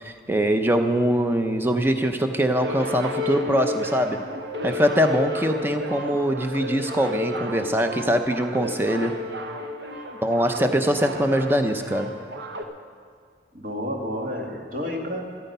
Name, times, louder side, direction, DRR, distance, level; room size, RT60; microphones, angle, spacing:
voice 1, 0.0-4.2 4.6-9.2 10.2-12.1, equal, 10° right, 6 dB, 0.6 m, -23 dB
sound 1, 2.5-12.6, left 2 dB, 65° right, 1.0 m, -32 dB
voice 2, 13.5-15.2, equal, 45° right, 0 dB, 2.0 m, -30 dB
13.5 x 13.0 x 5.5 m, 2.1 s
head